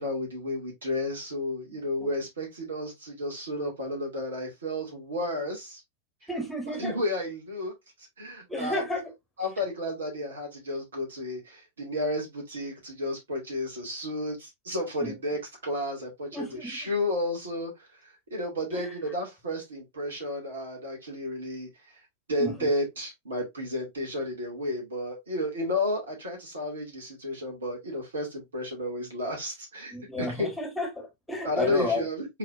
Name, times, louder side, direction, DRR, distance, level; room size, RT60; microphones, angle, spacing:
voice 1, 0.0-5.8 6.8-7.7 8.2-8.8 9.4-22.0 22.3-30.5 31.4-32.3, left 1 dB, 70° right, 2.5 m, -32 dB
voice 2, 1.7-2.1 6.3-7.0 8.5-9.0 15.0-15.1 16.3-16.8 18.7-18.9 22.4-22.7 29.9-32.0, left 1 dB, 5° left, 1.8 m, -32 dB
4.8 x 4.1 x 2.6 m
figure-of-eight pair, 90°, 0 cm